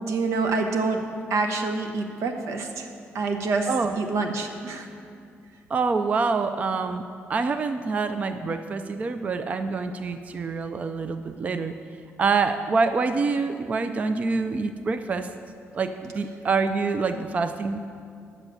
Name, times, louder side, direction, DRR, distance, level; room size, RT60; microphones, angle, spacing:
voice 1, 0.1-1.0 1.3-2.9 3.1-3.7 4.0-4.9, right 3 dB, 85° right, 4 dB, 1.0 m, -26 dB
voice 2, 3.7-4.0 5.7-7.0 7.3-11.7 12.2-15.3 15.7-17.8, right 4 dB, 30° right, 9 dB, 0.3 m, -26 dB
9.2 x 7.2 x 6.8 m, 2.4 s
cardioid pair, 155°, 5 cm